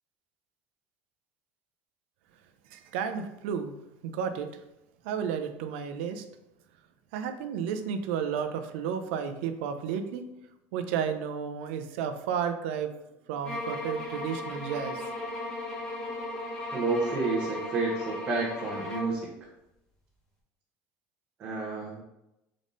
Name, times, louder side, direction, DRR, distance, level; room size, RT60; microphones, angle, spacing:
voice 1, 2.7-3.7 4.0-4.6 5.0-6.2 7.1-10.2 10.7-12.9 13.3-15.1, right 7 dB, 90° right, 8 dB, 0.5 m, -32 dB
sound 1, 13.4-19.2, left 1 dB, 15° left, 1.0 m, -36 dB
voice 2, 16.7-19.5 21.4-22.0, right 3 dB, 30° right, -5 dB, 0.9 m, -30 dB
3.8 x 3.5 x 3.8 m, 0.89 s
cardioid pair, 165°, 6 cm